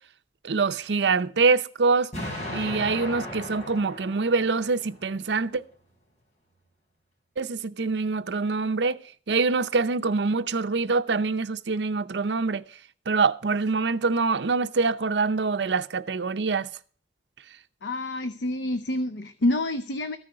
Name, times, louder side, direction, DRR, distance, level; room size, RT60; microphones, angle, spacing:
voice 1, 0.4-2.1 2.5-5.6 7.4-9.0 9.3-12.6 13.1-16.7, right 4 dB, 75° right, 0.6 m, -25 dB
Explosion, 2.1-5.1, left 1 dB, 40° left, 4.8 m, -36 dB
voice 2, 17.8-20.2, left 1 dB, 90° left, 0.7 m, -27 dB
14.0 x 6.4 x 6.7 m
head